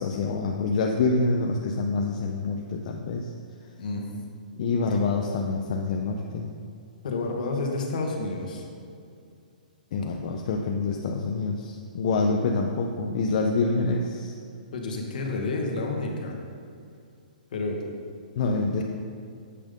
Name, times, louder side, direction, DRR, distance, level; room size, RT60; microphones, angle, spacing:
voice 1, 0.0-3.3 4.6-6.5 9.9-14.4 18.4-18.8, left 3 dB, 45° left, 1 dB, 0.6 m, -26 dB
voice 2, 7.0-8.6 13.8-13.9 14.7-16.4 17.5-17.8, left 3 dB, 65° left, 1 dB, 1.5 m, -30 dB
8.5 x 5.4 x 5.2 m, 2.4 s
hypercardioid pair, 160°, 5 cm